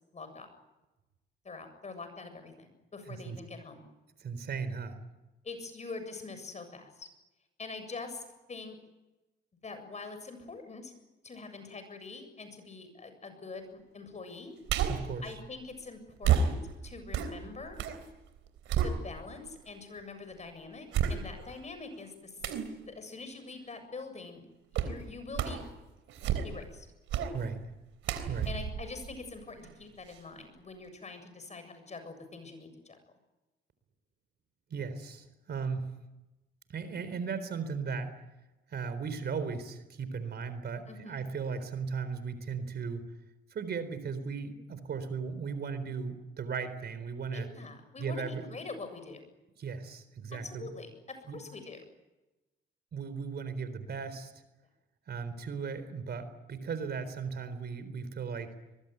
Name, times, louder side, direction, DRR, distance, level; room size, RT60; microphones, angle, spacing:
voice 1, 0.1-0.5 1.4-3.8 5.4-7.1 7.6-8.8 9.6-10.9 11.2-14.5 15.2-17.8 18.8-22.4 22.9-24.4 24.7-25.6 26.4-26.9 28.5-33.0 40.9-41.2 47.3-49.2 50.3-51.8, left 4 dB, 35° left, 9 dB, 7.4 m, -44 dB
voice 2, 3.1-3.4 4.2-5.0 14.9-15.2 27.3-27.6 28.3-28.5 34.7-35.9 36.7-38.1 38.7-43.0 43.5-47.5 48.0-48.4 49.6-50.7 51.3-51.4 52.9-54.3 55.1-58.5, right 5 dB, 55° right, 12 dB, 4.0 m, -36 dB
sound 1, 14.7-15.1 16.2-18.0 18.4-19.5 20.0-20.1 20.9-21.6 22.4-22.7 24.7-25.0 25.3-25.7 26.1-26.7 27.1-27.4 28.0-29.7 30.1-30.2, right 8 dB, 85° right, 3.6 m, -31 dB
24.0 x 22.0 x 9.3 m, 1.0 s
cardioid pair, 90°, 20 cm